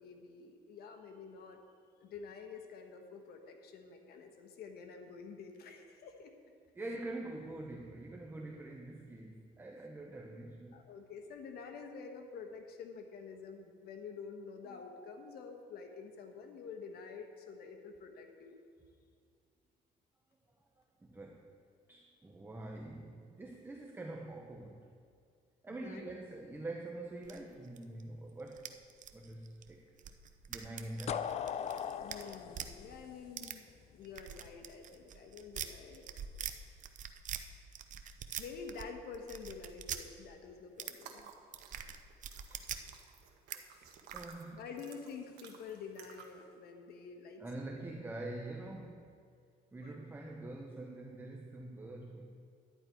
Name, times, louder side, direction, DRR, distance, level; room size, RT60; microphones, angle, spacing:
voice 1, 0.0-1.6 2.0-6.3 10.7-18.6 25.8-26.1 31.6-36.1 38.4-41.3 43.6-44.2 44.5-47.9 49.8-50.0, left 5 dB, 70° left, 5 dB, 1.2 m, -49 dB
voice 2, 6.8-10.8 21.0-21.5 21.9-24.9 25.6-28.7 29.1-29.8 30.5-31.3 42.5-42.6 43.5-43.6 44.1-44.6 47.4-49.1 49.7-52.3, right 2 dB, 10° right, 1 dB, 0.9 m, -45 dB
sound 1, 27.2-28.0 28.4-32.7 33.4-33.5 34.0-36.5 36.8-37.4 37.7-38.9 39.1-40.0 40.8-40.9 41.2-42.9 43.5-43.6 43.8-44.2, right 9 dB, 50° right, 0.7 m, -44 dB
sound 2, 31.1-33.9, left 8 dB, 40° left, 0.4 m, -39 dB
sound 3, 40.9-46.4, right 7 dB, 80° right, 1.3 m, -55 dB
11.5 x 10.0 x 4.6 m, 2.2 s
cardioid pair, 110°, 17 cm